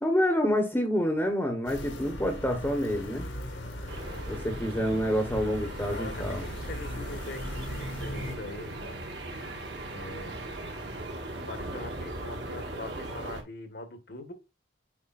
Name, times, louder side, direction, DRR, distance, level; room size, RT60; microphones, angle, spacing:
voice 1, 0.0-3.3 4.3-6.4, equal, 10° left, 1.0 m, -27 dB
sound 1, 1.6-8.4, left 1 dB, 80° left, 2.2 m, -38 dB
sound 2, 3.9-13.4, right 1 dB, 60° right, 1.8 m, -39 dB
voice 2, 5.9-9.0 9.9-10.4 11.5-14.3, left 2 dB, 55° left, 1.4 m, -42 dB
8.8 x 4.9 x 2.5 m
head